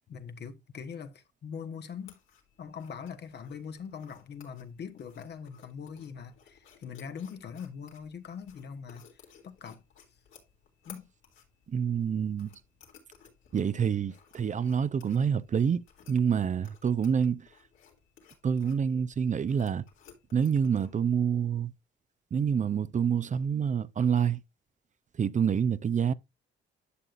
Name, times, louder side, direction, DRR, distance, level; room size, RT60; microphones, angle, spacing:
voice 1, 0.0-2.2 2.6-9.8 10.8-11.1, left 6 dB, 55° left, 1.3 m, -42 dB
sound 1, 2.0-20.9, left 7 dB, 85° left, 3.3 m, -58 dB
voice 2, 11.7-12.5 13.5-17.5 18.4-19.8 20.3-21.7 22.3-24.4 25.2-26.1, right 7 dB, 40° right, 0.6 m, -27 dB
11.0 x 6.7 x 2.5 m
cardioid pair, 90°, 20 cm